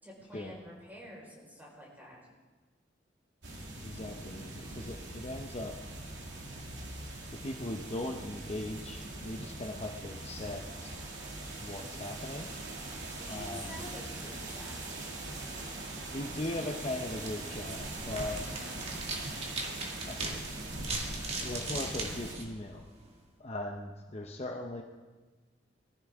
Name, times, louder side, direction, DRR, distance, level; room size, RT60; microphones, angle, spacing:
voice 1, 0.0-2.2 13.2-14.8, left 1 dB, 10° right, -4 dB, 4.6 m, -48 dB
sound 1, 3.4-22.4, right 2 dB, 80° right, 2.4 m, -41 dB
voice 2, 3.8-5.8 7.4-11.0 11.6-12.5 13.3-13.8 16.1-18.4 20.1-20.4 21.4-22.8 23.4-24.8, left 1 dB, 35° left, 2 dB, 0.8 m, -39 dB
sound 2, 17.0-23.2, right 2 dB, 35° right, 1.9 m, -41 dB
20.5 x 14.0 x 3.6 m, 1.3 s
head